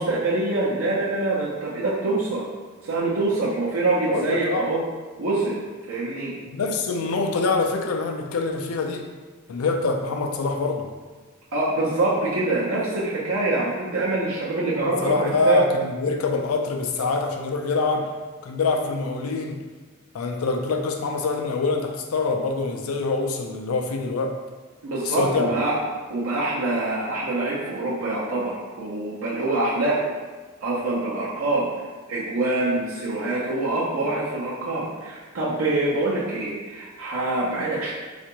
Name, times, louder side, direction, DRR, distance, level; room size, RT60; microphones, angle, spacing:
voice 1, 0.0-2.4 2.8-4.8 5.2-5.6 5.9-6.3 11.5-15.6 24.8-25.8 26.1-30.1 30.6-31.7 32.1-37.9, right 2 dB, 85° right, -7 dB, 0.6 m, -25 dB
voice 2, 4.1-4.9 6.5-9.1 9.5-10.9 14.8-18.1 18.4-19.6 20.1-24.4 25.0-25.6, left 3 dB, 85° left, 4 dB, 0.4 m, -25 dB
3.3 x 2.4 x 2.9 m, 1.4 s
head